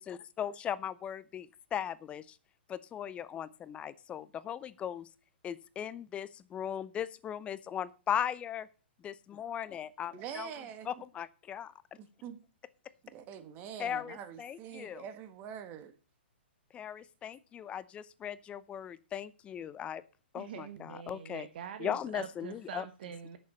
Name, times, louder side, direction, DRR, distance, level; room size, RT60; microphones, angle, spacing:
voice 1, 0.0-2.4 2.7-5.1 5.4-8.7 9.0-10.5 10.9-11.7 13.8-15.0 16.7-20.0 20.3-21.5 21.8-22.9, left 9 dB, 20° left, 0.6 m, -38 dB
voice 2, 10.1-10.9 12.0-12.4 13.0-15.9, right 8 dB, 30° right, 1.4 m, -45 dB
voice 3, 20.3-23.4, right 8 dB, 60° right, 1.1 m, -44 dB
9.5 x 6.8 x 6.8 m
hypercardioid pair, 125°, 6 cm